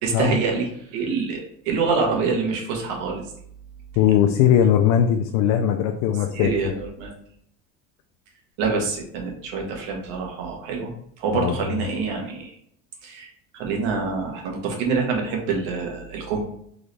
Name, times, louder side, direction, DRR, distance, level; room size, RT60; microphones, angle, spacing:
voice 1, 0.0-3.2 6.3-7.1 8.6-10.9 11.2-12.5 13.0-16.4, right 4 dB, 90° right, 1 dB, 1.4 m, -26 dB
voice 2, 4.0-6.5 11.3-11.8, left 9 dB, 70° left, 5 dB, 0.5 m, -19 dB
3.9 x 3.8 x 3.3 m, 0.68 s
cardioid pair, 145°, 29 cm